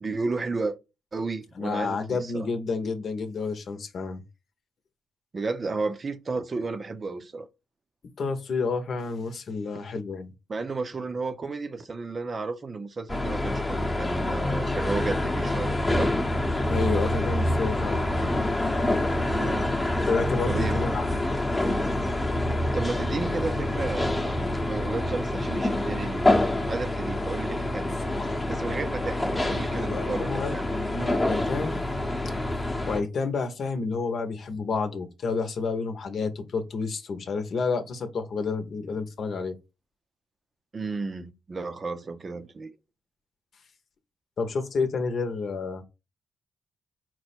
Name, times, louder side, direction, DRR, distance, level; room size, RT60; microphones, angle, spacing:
voice 1, 0.0-0.8 1.1-2.5 5.3-7.5 10.5-16.1 19.2-19.7 20.5-20.8 22.7-26.4 26.7-28.0 28.5-30.8 40.7-42.8, right 3 dB, 40° right, 0.6 m, -33 dB
voice 2, 1.6-4.2 8.2-10.3 16.7-18.1 20.1-21.2 28.1-28.5 29.7-31.8 32.2-32.3 32.9-39.6 44.4-45.8, left 4 dB, 65° left, 0.8 m, -30 dB
sound 1, 13.1-33.0, left 1 dB, 20° left, 0.8 m, -26 dB
4.5 x 2.1 x 4.2 m
cardioid pair, 70°, 0 cm